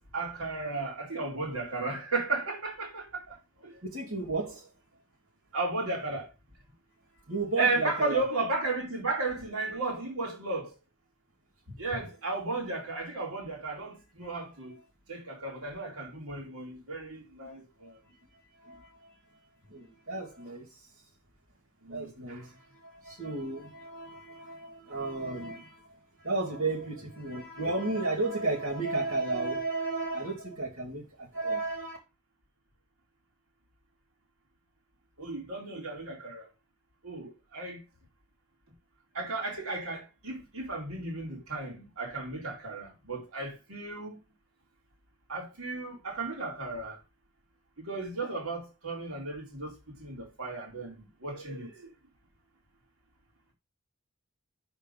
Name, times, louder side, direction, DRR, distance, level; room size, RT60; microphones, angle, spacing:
voice 1, 0.1-3.4 3.6-3.8 5.5-6.3 7.6-10.7 11.8-14.8 15.1-18.0 21.8-22.4 35.2-36.5 37.0-37.8 39.1-44.2 45.3-47.0 47.8-51.9, right 3 dB, 85° right, 2.7 m, -34 dB
voice 2, 3.8-4.7 7.3-8.2 11.7-11.8 18.5-19.2 19.7-20.9 21.9-32.0, right 2 dB, 65° right, 2.4 m, -34 dB
5.5 x 4.4 x 5.3 m
head